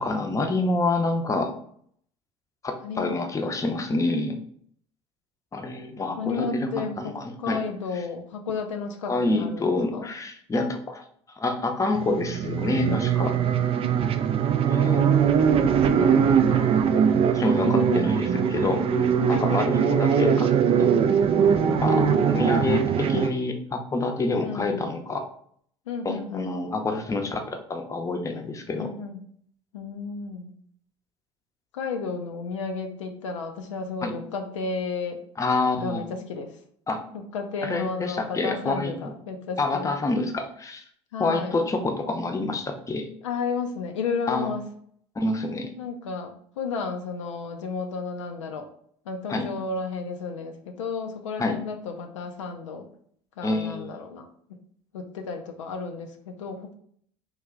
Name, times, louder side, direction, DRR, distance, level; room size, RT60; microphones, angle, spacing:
voice 1, 0.0-1.5 2.6-4.4 5.5-7.6 9.1-11.0 11.4-13.3 14.7-15.0 17.4-20.5 20.8-20.9 21.8-25.2 26.0-28.9 34.0-34.1 35.4-36.0 36.9-37.0 37.6-39.1 39.6-40.8 41.2-43.1 44.3-44.5 45.2-45.7 49.3-49.5 51.4-51.6 53.4-54.0, left 3 dB, 20° left, 5 dB, 0.6 m, -27 dB
voice 2, 2.8-3.2 6.2-7.1 7.4-10.1 13.8-14.2 14.8-15.4 15.8-17.3 17.6-18.0 19.2-19.6 21.9-22.7 24.4-24.9 25.9-26.5 28.8-29.2 29.7-30.5 31.7-35.2 35.8-36.6 37.1-39.9 41.1-41.6 43.2-44.7 45.8-48.7 49.1-52.9 53.4-54.3 54.9-56.7, left 4 dB, 85° left, 4 dB, 0.4 m, -33 dB
sound 1, 11.9-23.3, right 7 dB, 40° right, 0.4 m, -21 dB
3.0 x 2.3 x 3.6 m, 0.62 s
hypercardioid pair, 70°, 15 cm